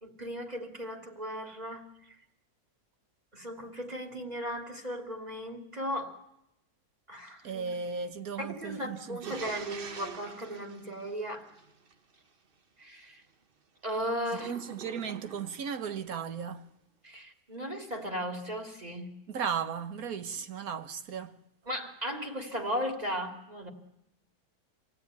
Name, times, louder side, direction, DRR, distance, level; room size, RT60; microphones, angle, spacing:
voice 1, 0.0-1.9 3.3-6.2 7.1-7.7 8.4-11.5 12.8-13.2 13.8-14.5 17.0-19.2 21.7-23.7, equal, 25° right, 2.8 m, -36 dB
voice 2, 7.4-9.4 14.3-16.6 19.3-21.4, right 6 dB, 70° right, 1.6 m, -36 dB
sound 1, 9.2-11.9 14.3-15.8, right 5 dB, 40° right, 1.1 m, -45 dB
26.5 x 17.0 x 9.5 m
omnidirectional pair, 1.6 m